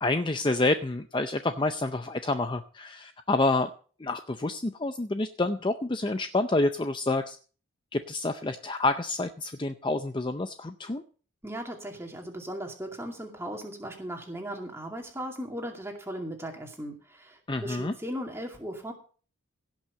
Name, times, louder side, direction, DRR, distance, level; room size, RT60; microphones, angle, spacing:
voice 1, 0.0-3.7 4.0-7.4 7.9-11.0 17.5-17.9, left 2 dB, 20° left, 8 dB, 0.5 m, -28 dB
voice 2, 11.4-18.9, equal, 10° right, 2 dB, 2.3 m, -37 dB
17.0 x 6.0 x 6.6 m, 0.41 s
head